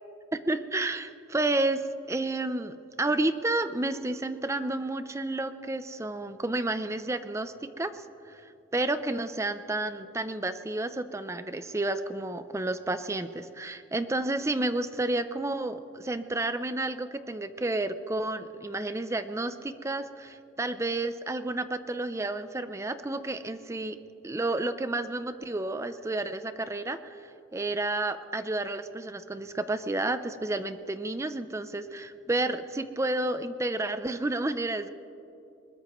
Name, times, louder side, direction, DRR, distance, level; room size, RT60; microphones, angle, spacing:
voice 1, 0.5-8.4 8.7-24.0 24.2-27.2 27.5-34.9, right 2 dB, 15° right, 11 dB, 0.4 m, -31 dB
22.5 x 21.0 x 3.0 m, 2.8 s
head